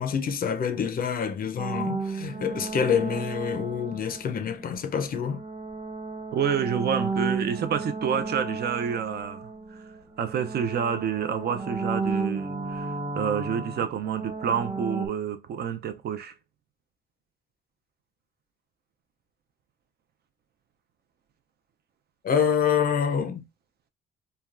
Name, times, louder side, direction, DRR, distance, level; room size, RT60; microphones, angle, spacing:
voice 1, 0.0-5.4 22.2-23.4, left 7 dB, 45° left, 0.5 m, -26 dB
sound 1, 1.6-4.5 5.2-10.0 10.2-15.1, right 4 dB, 30° right, 1.1 m, -33 dB
voice 2, 6.3-9.8 10.2-16.3, right 7 dB, 55° right, 0.5 m, -29 dB
3.3 x 2.2 x 2.4 m
cardioid pair, 90°, 20 cm